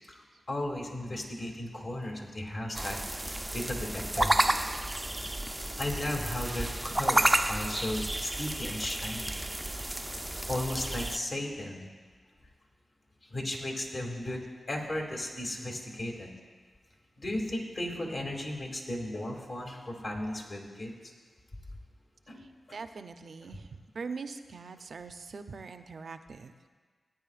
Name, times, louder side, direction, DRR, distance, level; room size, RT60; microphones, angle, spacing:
voice 1, 0.1-3.0 3.5-4.5 5.8-9.4 10.5-11.8 13.3-14.4 14.7-16.3 17.2-20.9 22.3-22.4 22.7-22.8, left 1 dB, 55° left, 0 dB, 2.4 m, -35 dB
sound 1, 2.7-11.2, right 1 dB, 15° right, 0.4 m, -31 dB
voice 2, 22.7-26.7, right 4 dB, 70° right, 8 dB, 0.6 m, -42 dB
17.5 x 9.6 x 2.5 m, 1.5 s
cardioid pair, 45°, 0 cm